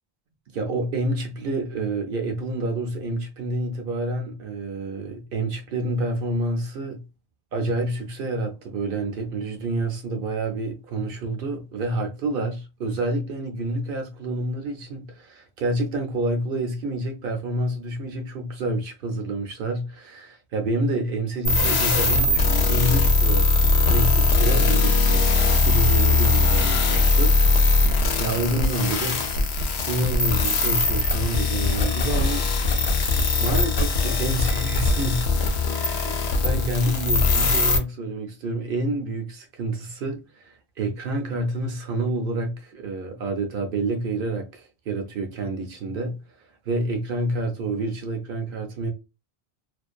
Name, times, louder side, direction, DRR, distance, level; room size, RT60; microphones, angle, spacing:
voice 1, 0.5-7.0 7.5-23.5 23.9-27.3 28.2-33.0 33.4-35.3 35.7-46.2 46.7-48.9, right 2 dB, 65° right, 0.7 m, -28 dB
sound 1, 21.5-37.8, left 3 dB, 90° left, 0.8 m, -20 dB
2.5 x 2.1 x 2.4 m
omnidirectional pair, 1.1 m